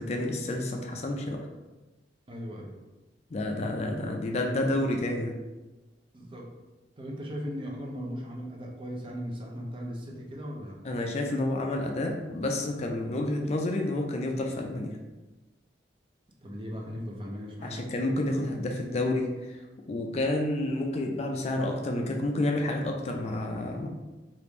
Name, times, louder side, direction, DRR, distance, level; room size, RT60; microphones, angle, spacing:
voice 1, 0.0-1.4 3.3-5.3 10.8-15.0 17.6-19.6 19.9-23.9, left 1 dB, 35° left, 2 dB, 0.3 m, -29 dB
voice 2, 2.3-2.8 6.1-6.5 7.0-10.8 16.4-17.8, equal, 30° right, -1 dB, 0.5 m, -38 dB
3.0 x 2.5 x 3.4 m, 1.1 s
head